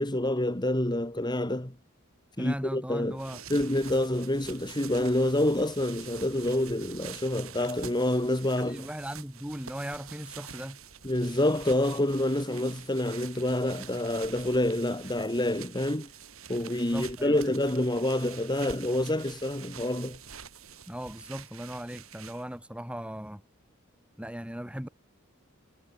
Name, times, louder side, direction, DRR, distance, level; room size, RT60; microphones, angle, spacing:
voice 1, 0.0-1.7 2.4-3.2 3.5-8.9 11.0-16.1 16.5-20.2, left 1 dB, 20° left, 2.7 m, -27 dB
voice 2, 2.4-3.4 8.6-10.8 16.8-17.4 20.9-23.4 24.2-24.9, equal, 5° right, 5.8 m, -38 dB
sound 1, 3.0-22.6, right 8 dB, 90° right, 7.3 m, -47 dB
head